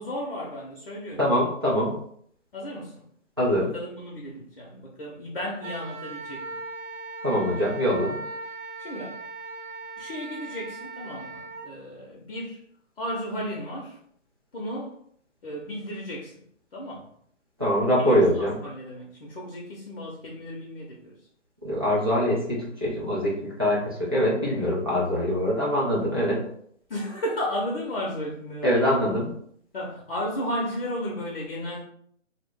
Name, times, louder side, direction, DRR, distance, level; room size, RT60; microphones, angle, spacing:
voice 1, 0.0-1.3 2.5-3.0 3.6-6.6 8.8-9.2 10.0-12.6 13.0-14.0 14.5-14.9 15.4-16.4 16.7-17.1 18.0-21.1 26.9-29.1 29.7-31.8, equal, 50° left, -3 dB, 0.7 m, -34 dB
voice 2, 1.2-2.0 3.4-3.7 7.2-8.2 17.6-18.5 21.6-26.4 28.6-29.3, equal, 20° right, -7 dB, 0.4 m, -23 dB
Wind instrument woodwind instrument, 5.6-11.7, right 3 dB, 70° right, 0.7 m, -38 dB
2.4 x 2.1 x 3.5 m, 0.65 s
figure-of-eight pair, 150°, 38 cm